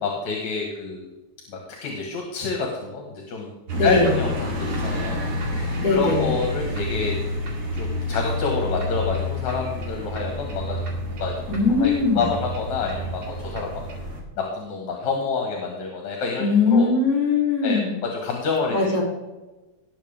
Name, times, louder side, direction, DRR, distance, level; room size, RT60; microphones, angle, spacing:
voice 1, 0.0-1.1 1.5-3.5 3.8-7.2 7.7-10.8 11.1-11.3 11.7-13.8 14.4-16.9 17.6-17.8 18.1-18.8, left 4 dB, 75° left, 0 dB, 2.9 m, -28 dB
voice 2, 3.7-4.1 5.8-6.4 11.5-12.2 16.4-17.9 18.7-19.0, left 4 dB, 55° left, -1 dB, 4.7 m, -20 dB
sound 1, 3.7-14.2, left 1 dB, 50° right, 2.9 m, -29 dB
18.5 x 7.3 x 3.5 m, 1.1 s
omnidirectional pair, 3.4 m